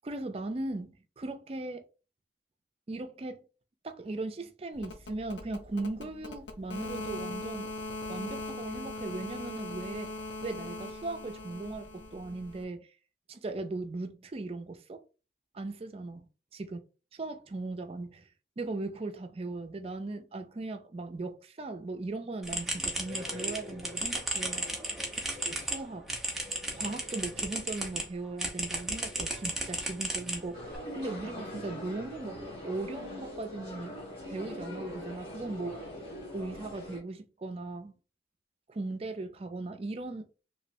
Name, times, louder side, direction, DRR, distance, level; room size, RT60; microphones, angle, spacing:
voice 1, 0.0-1.8 2.9-3.4 3.8-7.7 8.1-10.1 10.4-12.9 13.3-15.0 15.5-16.3 16.5-16.8 17.2-18.3 18.6-24.7 25.5-26.1 26.7-30.6 31.0-34.0 34.3-35.9 36.3-38.0 38.7-40.3, right 2 dB, 35° right, 0.4 m, -38 dB
sound 1, 4.7-12.6, left 2 dB, 80° left, 0.6 m, -40 dB
sound 2, 22.4-28.0 28.4-30.8, right 1 dB, ahead, 0.7 m, -34 dB
sound 3, 30.5-37.0, left 1 dB, 30° left, 1.5 m, -42 dB
3.1 x 3.0 x 2.6 m
head